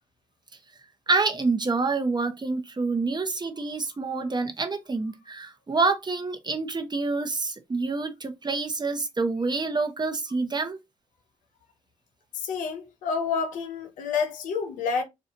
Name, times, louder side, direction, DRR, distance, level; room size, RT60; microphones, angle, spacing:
voice 1, 1.1-10.8, right 3 dB, 35° right, 0.7 m, -27 dB
voice 2, 12.4-15.0, left 5 dB, 85° left, 0.5 m, -29 dB
2.4 x 2.2 x 2.8 m
supercardioid pair, 40°, 13 cm